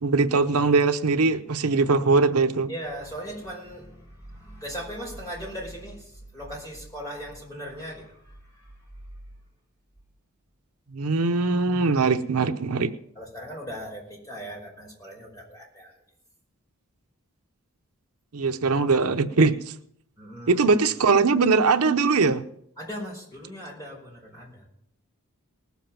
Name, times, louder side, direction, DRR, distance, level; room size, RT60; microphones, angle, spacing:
voice 1, 0.0-2.7 10.9-12.9 18.3-19.7 20.5-22.4, right 4 dB, 85° right, 9 dB, 0.8 m, -21 dB
voice 2, 2.7-8.7 13.2-16.0 20.2-20.7 22.8-24.7, equal, 15° left, -3 dB, 5.4 m, -38 dB
19.5 x 7.3 x 5.9 m, 0.68 s
head